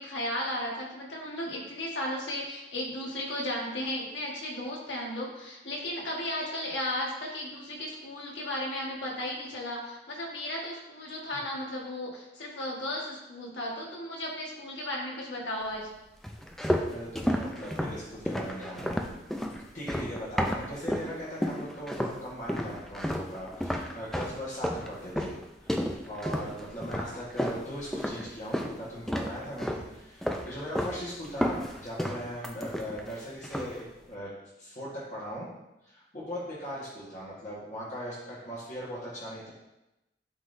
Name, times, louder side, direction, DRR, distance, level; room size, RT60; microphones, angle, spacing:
voice 1, 0.0-15.9, left 1 dB, 75° left, -2 dB, 1.5 m, -35 dB
sound 1, 16.2-21.1 21.4-22.2 22.5-28.8 29.1-29.9 30.2-31.0 31.2-33.1 33.4-33.8, equal, ahead, 0.4 m, -31 dB
voice 2, 16.9-19.0 19.7-25.3 25.6-34.3 34.6-35.5 35.8-39.5, equal, 40° left, -8 dB, 1.4 m, -39 dB
11.0 x 3.9 x 2.7 m, 0.95 s
head